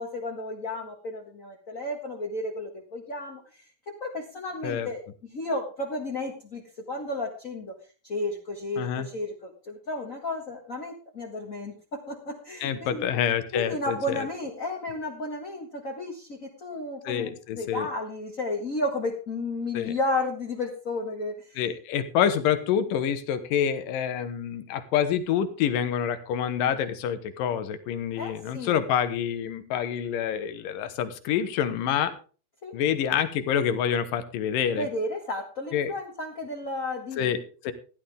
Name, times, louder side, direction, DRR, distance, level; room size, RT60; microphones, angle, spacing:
voice 1, 0.0-5.0 5.3-7.7 8.0-13.0 13.5-21.6 28.2-28.7 32.6-32.7 34.7-37.3, left 2 dB, 40° left, 0 dB, 1.2 m, -33 dB
voice 2, 8.8-9.1 12.6-14.3 17.0-17.9 19.7-19.9 21.6-32.1 32.7-34.9 35.7-35.9 37.2-37.7, left 9 dB, 75° left, 11 dB, 2.8 m, -27 dB
15.5 x 11.5 x 3.5 m, 0.37 s
omnidirectional pair, 4.0 m